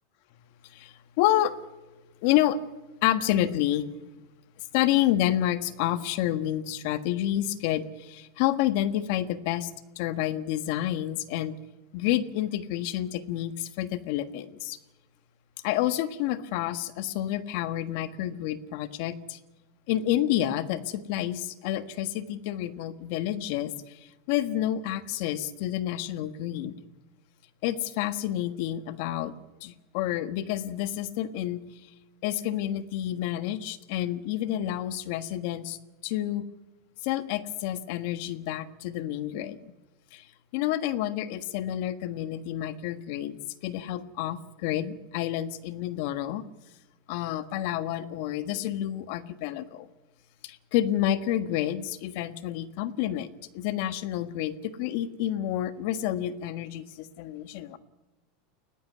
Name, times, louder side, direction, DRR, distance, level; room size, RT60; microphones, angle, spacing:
voice 1, 0.7-1.6 2.2-2.6 3.0-3.9 4.7-9.7 9.9-11.5 11.9-14.8 15.6-19.4 19.9-26.7 27.6-29.3 29.6-31.6 32.2-36.4 37.0-39.6 40.1-40.2 40.5-46.4 47.1-49.9 50.4-57.8, left 12 dB, 65° left, 12 dB, 1.5 m, -29 dB
20.5 x 15.0 x 9.7 m, 1.1 s
supercardioid pair, 130°, 0 cm